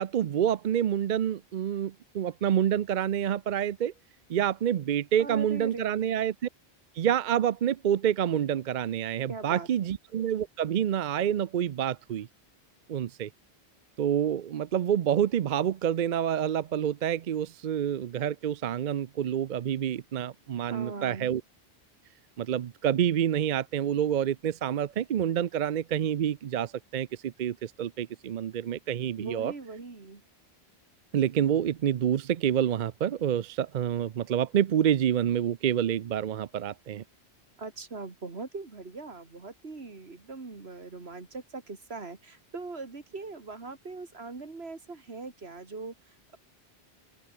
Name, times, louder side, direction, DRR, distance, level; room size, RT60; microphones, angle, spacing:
voice 1, 0.0-3.9 4.3-6.3 7.0-12.3 12.9-13.3 14.0-21.4 22.4-29.5 31.1-37.0, right 9 dB, 55° right, 0.6 m, -28 dB
voice 2, 5.2-6.2 9.3-10.0 20.7-21.3 29.2-30.2 37.6-46.4, right 3 dB, 75° right, 2.7 m, -41 dB
open air
omnidirectional pair, 1.1 m